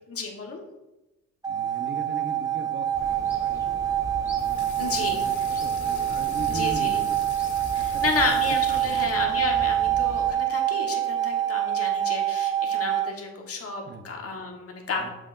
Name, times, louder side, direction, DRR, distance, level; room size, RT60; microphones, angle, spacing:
voice 1, 0.1-0.6 4.8-5.2 6.5-7.0 7.7-15.1, left 4 dB, 50° left, 1 dB, 1.4 m, -31 dB
sound 1, 1.4-13.1, right 11 dB, 15° right, 0.3 m, -26 dB
voice 2, 1.5-3.9 4.4-7.2 7.7-8.4 8.7-9.0 13.8-14.1 14.9-15.1, right 3 dB, 35° right, 6 dB, 0.9 m, -39 dB
sound 2, 2.9-10.3, left 1 dB, 10° left, 1.1 m, -40 dB
Water tap faucet / Sink (filling or washing), 4.4-9.6, left 8 dB, 80° left, 0.8 m, -45 dB
7.2 x 5.9 x 2.6 m, 0.98 s
cardioid pair, 90°, 30 cm